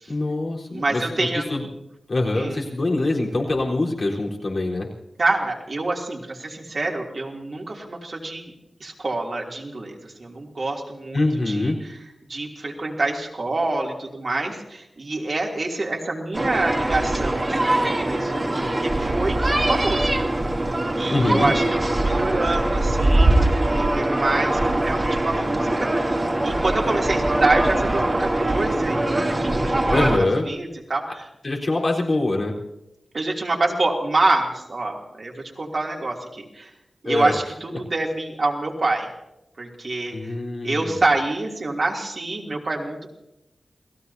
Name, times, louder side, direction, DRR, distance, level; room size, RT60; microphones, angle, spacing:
voice 1, 0.1-1.7 2.1-4.9 11.1-11.8 21.1-21.5 29.9-30.5 31.4-32.5 37.0-37.3 40.1-41.0, left 2 dB, 55° left, -2 dB, 4.2 m, -24 dB
voice 2, 0.7-1.5 2.3-2.6 5.2-8.5 8.8-11.7 12.3-18.3 18.8-19.4 19.7-20.1 20.9-26.1 26.4-30.0 30.4-31.0 33.1-36.7 37.0-39.1 39.6-40.3 40.6-43.1, right 2 dB, 55° right, 0 dB, 3.0 m, -26 dB
sound 1, 16.3-30.2, right 1 dB, 30° right, 2.8 m, -22 dB
29.0 x 17.0 x 2.9 m, 0.90 s
cardioid pair, 55°, 0 cm